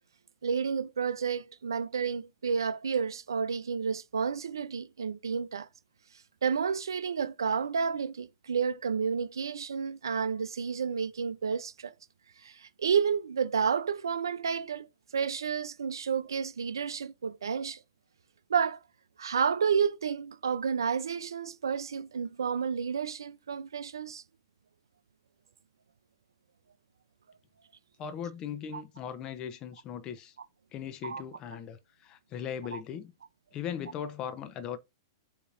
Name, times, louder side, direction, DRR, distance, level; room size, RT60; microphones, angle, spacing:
voice 1, 0.4-5.7 6.4-11.9 12.4-14.9 15.1-17.8 18.5-18.8 19.2-24.2 28.7-28.8 31.0-31.2 32.7-32.8, right 6 dB, 85° right, 0.4 m, -30 dB
voice 2, 28.0-30.3 30.7-33.1 33.5-34.8, left 8 dB, 35° left, 0.7 m, -38 dB
6.8 x 2.9 x 2.5 m
hypercardioid pair, 115°, 2 cm